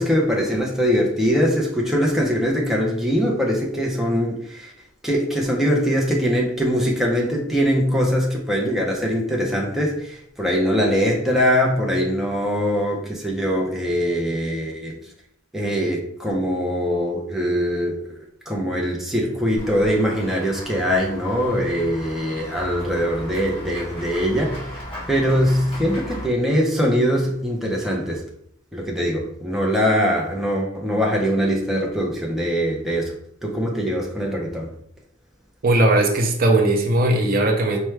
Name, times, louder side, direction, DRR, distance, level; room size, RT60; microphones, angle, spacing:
voice 1, 0.0-4.7 5.0-15.0 15.5-28.3 28.7-33.1 33.4-34.7, equal, ahead, -2 dB, 0.6 m, -22 dB
Run / Walk footsteps / Bell, 19.6-26.3, equal, 25° left, 1.3 m, -36 dB
voice 2, 35.6-37.8, right 1 dB, 45° right, 2 dB, 0.5 m, -18 dB
4.5 x 2.2 x 3.2 m, 0.68 s
head